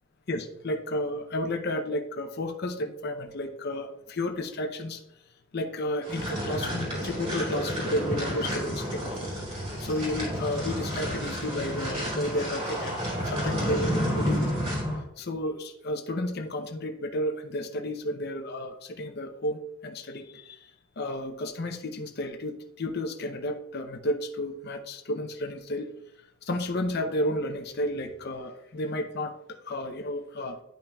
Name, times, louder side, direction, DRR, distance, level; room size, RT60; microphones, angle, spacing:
voice 1, 0.3-5.0 5.5-9.2 9.8-14.5 15.2-20.7 21.0-25.9 26.4-30.6, left 1 dB, 50° left, 5 dB, 0.6 m, -32 dB
sound 1, 6.0-15.0, equal, 30° right, 2.5 m, -30 dB
10.0 x 5.5 x 2.3 m, 0.81 s
head